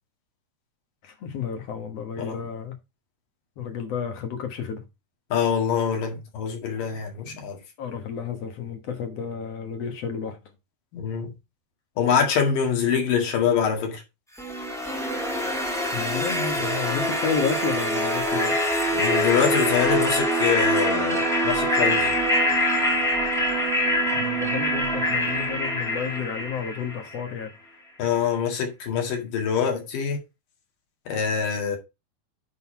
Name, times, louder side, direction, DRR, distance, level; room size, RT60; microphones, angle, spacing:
voice 1, 1.0-2.8 3.6-4.8 7.2-7.4 7.8-10.4 15.9-18.6 24.1-27.5, left 6 dB, 55° left, 2.1 m, -31 dB
voice 2, 5.3-7.6 10.9-11.3 12.0-14.0 18.9-22.2 28.0-30.2 31.1-31.8, left 7 dB, 80° left, 3.7 m, -25 dB
sound 1, 14.4-27.3, equal, 5° left, 0.4 m, -24 dB
9.8 x 4.1 x 4.4 m
omnidirectional pair, 3.9 m